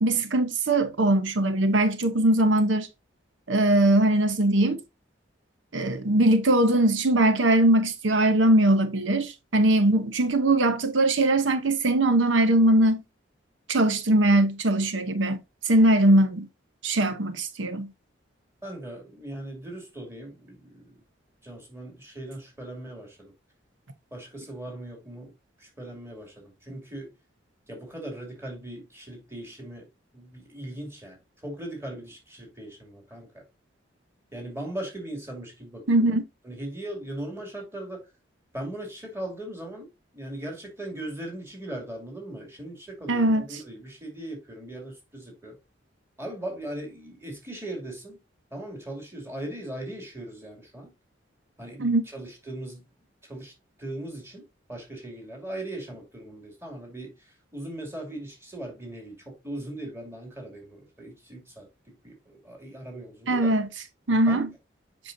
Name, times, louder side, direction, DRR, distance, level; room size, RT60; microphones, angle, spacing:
voice 1, 0.0-2.9 3.5-4.8 5.7-13.0 13.7-15.4 15.6-16.5 16.8-17.9 35.9-36.2 43.1-43.4 51.8-52.0 63.3-63.7 64.1-64.5, right 1 dB, 80° right, 0.8 m, -21 dB
voice 2, 18.6-21.0 21.4-23.3 24.1-25.3 25.6-27.1 27.7-29.8 30.1-31.2 31.4-33.4 34.3-36.2 36.4-38.1 38.5-45.6 46.2-48.2 48.5-50.9 51.6-52.8 53.3-53.5 53.8-54.4 54.7-63.5 64.3-64.4, right 1 dB, 15° right, 2.5 m, -39 dB
7.8 x 5.6 x 2.7 m
head